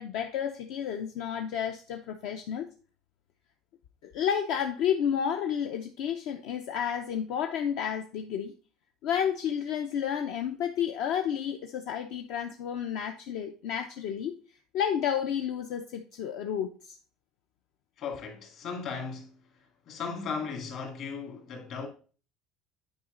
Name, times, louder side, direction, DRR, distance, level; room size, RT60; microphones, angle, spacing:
voice 1, 0.0-2.7 4.0-8.5 9.0-14.4 14.7-17.0, left 8 dB, 70° left, 0.7 m, -31 dB
voice 2, 18.0-19.4 19.9-21.9, left 5 dB, 50° left, 2.2 m, -36 dB
9.1 x 5.0 x 3.8 m
cardioid pair, 155°, 0 cm